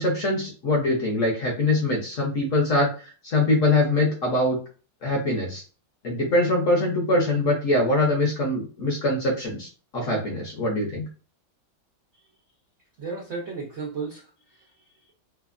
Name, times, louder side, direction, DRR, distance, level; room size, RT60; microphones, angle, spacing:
voice 1, 0.0-4.6 5.0-5.6 6.0-9.7 9.9-11.1, left 2 dB, 60° left, -1 dB, 0.9 m, -23 dB
voice 2, 13.0-15.1, right 4 dB, 85° right, -2 dB, 0.6 m, -35 dB
3.2 x 2.1 x 2.4 m, 0.36 s
omnidirectional pair, 2.1 m